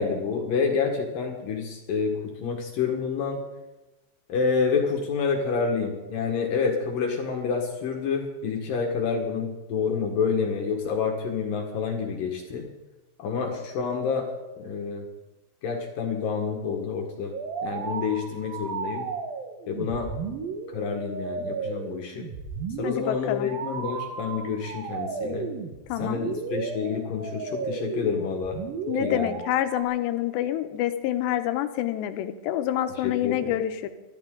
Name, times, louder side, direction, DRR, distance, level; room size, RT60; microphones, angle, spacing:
voice 1, 0.0-3.4 4.3-12.7 13.2-14.3 14.6-15.0 15.6-17.3 17.6-19.1 19.7-20.1 20.7-22.3 22.8-25.5 26.0-28.6 29.0-29.4 33.0-33.4, left 5 dB, 60° left, 2 dB, 2.7 m, -28 dB
sound 1, 17.3-29.8, right 5 dB, 65° right, 2.7 m, -34 dB
voice 2, 22.8-23.5 25.9-26.2 28.9-33.9, left 12 dB, 80° left, 9 dB, 3.0 m, -27 dB
24.5 x 12.5 x 3.8 m, 1.1 s
omnidirectional pair, 5.1 m